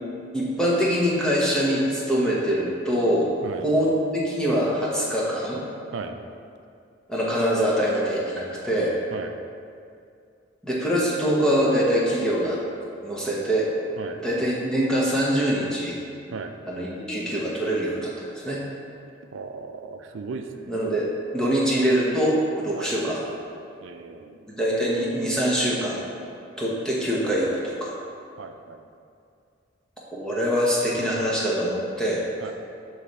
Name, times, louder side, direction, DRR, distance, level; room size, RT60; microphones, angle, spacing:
voice 1, 0.3-3.4 3.6-5.6 7.1-8.9 10.6-12.6 13.0-13.7 14.2-15.9 16.7-18.6 20.7-21.1 21.3-23.2 24.6-26.1 26.6-28.0 30.1-32.2, equal, 5° left, -6 dB, 1.0 m, -24 dB
voice 2, 19.3-20.7 22.7-22.9 23.8-24.5 28.4-28.8 32.4-32.5, right 4 dB, 80° right, 6 dB, 0.4 m, -36 dB
7.7 x 3.3 x 4.1 m, 2.4 s
head